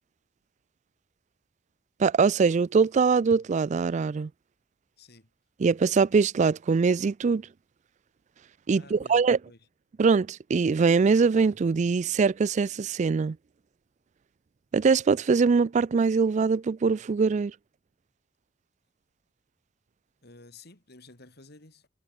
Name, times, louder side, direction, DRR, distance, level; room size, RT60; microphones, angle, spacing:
voice 1, 2.0-4.3 5.6-7.5 8.7-9.4 10.0-13.4 14.7-17.5, right 5 dB, 40° right, 0.3 m, -23 dB
voice 2, 5.0-5.3 8.7-9.7 20.2-21.9, left 3 dB, 55° left, 3.7 m, -52 dB
head